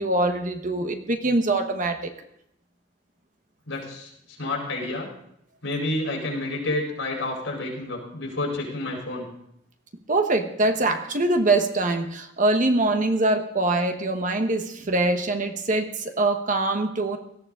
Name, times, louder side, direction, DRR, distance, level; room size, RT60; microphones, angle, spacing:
voice 1, 0.0-2.1 10.1-17.2, right 2 dB, 40° right, 6 dB, 1.2 m, -23 dB
voice 2, 3.7-4.1 4.4-5.1 5.6-9.3, left 2 dB, 85° left, -1 dB, 4.6 m, -29 dB
18.0 x 13.5 x 3.8 m, 0.74 s
head